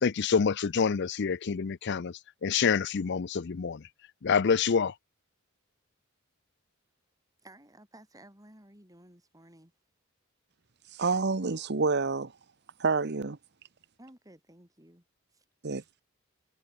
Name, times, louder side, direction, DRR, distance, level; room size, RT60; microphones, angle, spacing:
voice 1, 0.0-3.9 4.2-4.9, left 6 dB, 55° left, 0.5 m, -27 dB
voice 2, 7.4-9.8 14.0-15.5 15.7-15.9, right 1 dB, 15° right, 7.4 m, -55 dB
voice 3, 10.9-12.3 12.8-13.4 15.6-15.8, right 4 dB, 50° right, 1.0 m, -28 dB
head